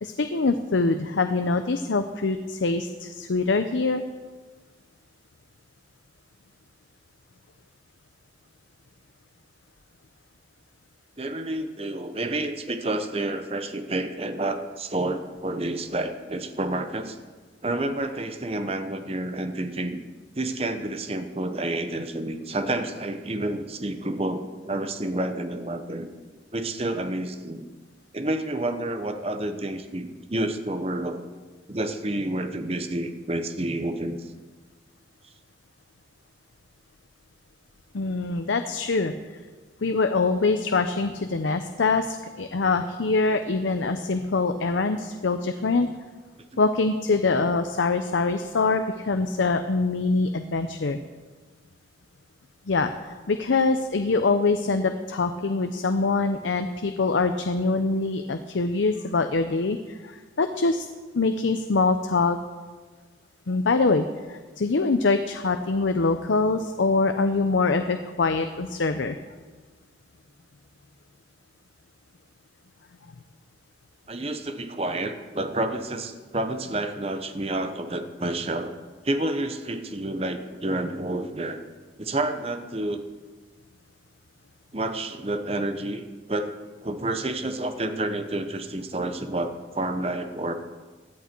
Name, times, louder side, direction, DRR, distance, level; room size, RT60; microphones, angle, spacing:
voice 1, 0.0-4.0 37.9-39.1 39.8-45.9 46.6-51.0 52.7-60.9 61.1-62.4 63.5-69.2, left 3 dB, 90° left, 8 dB, 0.6 m, -24 dB
voice 2, 11.2-17.2 17.6-20.0 20.4-26.1 26.5-27.6 28.1-31.2 31.7-34.3 74.1-78.7 79.0-81.6 82.0-83.0 84.7-86.0 86.3-90.5, right 1 dB, 30° right, 8 dB, 0.9 m, -29 dB
16.5 x 11.0 x 4.5 m, 1.4 s
head